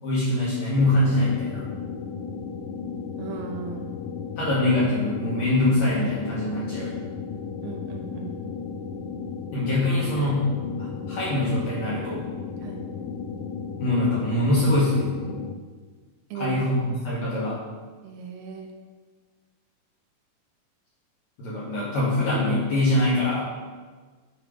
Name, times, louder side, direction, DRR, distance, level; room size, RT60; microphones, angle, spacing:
voice 1, 0.0-1.6 4.4-6.9 9.5-10.5 10.8-12.2 13.8-15.1 16.3-17.6 21.4-23.4, left 1 dB, 65° left, -7 dB, 2.0 m, -23 dB
sound 1, 0.8-15.6, left 5 dB, 85° left, 2.3 m, -34 dB
voice 2, 3.2-3.9 7.6-8.4 12.6-12.8 16.3-16.6 16.9-17.0 18.0-18.7, right 6 dB, 85° right, 1 dB, 2.5 m, -37 dB
8.9 x 3.2 x 4.9 m, 1.4 s
omnidirectional pair, 4.1 m